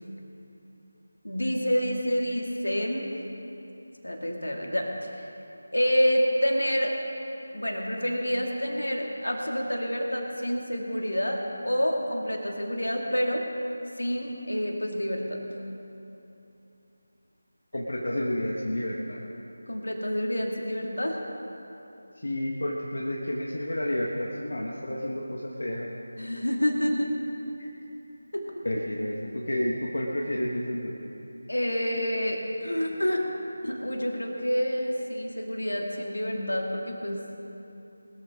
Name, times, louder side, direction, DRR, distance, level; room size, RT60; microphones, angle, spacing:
voice 1, 1.2-3.1 4.0-5.3 5.7-7.0 7.5-13.4 14.0-15.4 19.7-21.2 26.2-27.1 28.3-28.6 31.5-33.2 33.6-37.3, equal, 85° left, 0 dB, 2.4 m, -28 dB
voice 2, 17.7-19.2 22.2-25.9 27.6-27.7 28.6-31.0, left 1 dB, 65° left, -3 dB, 1.5 m, -30 dB
20.5 x 13.5 x 3.8 m, 3.0 s
figure-of-eight pair, 165°, 0 cm